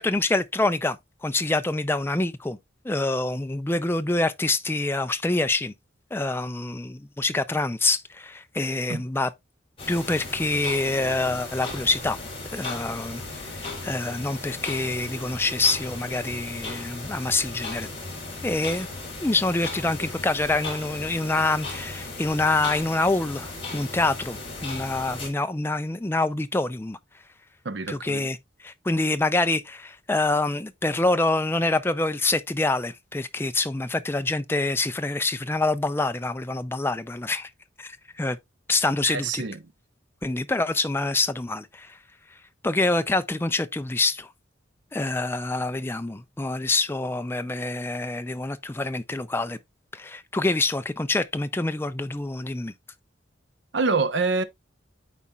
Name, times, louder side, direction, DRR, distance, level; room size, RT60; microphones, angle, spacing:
voice 1, 0.0-2.6 2.8-5.7 6.1-9.3 9.9-12.2 12.5-17.9 18.4-18.9 19.2-27.0 27.9-28.4 28.6-37.5 37.8-38.4 38.7-39.4 40.2-42.0 42.6-44.3 44.9-49.6 49.9-52.7, left 2 dB, 10° left, 0.4 m, -26 dB
sound 1, 9.8-25.3, left 2 dB, 30° left, 3.2 m, -36 dB
voice 2, 27.6-28.3 39.0-39.6 53.7-54.4, right 4 dB, 70° right, 0.7 m, -26 dB
12.5 x 4.2 x 2.3 m
head